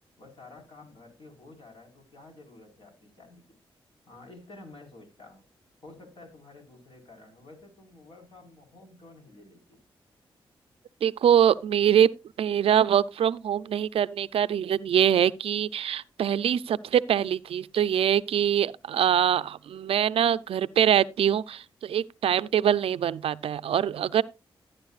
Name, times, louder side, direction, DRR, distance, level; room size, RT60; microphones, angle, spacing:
voice 1, 0.2-3.4 4.1-5.4 5.8-9.8, left 2 dB, 60° left, 4.5 m, -50 dB
voice 2, 11.0-12.1 12.4-24.2, right 9 dB, 80° right, 0.5 m, -24 dB
14.0 x 9.7 x 2.4 m
cardioid pair, 60°, 10 cm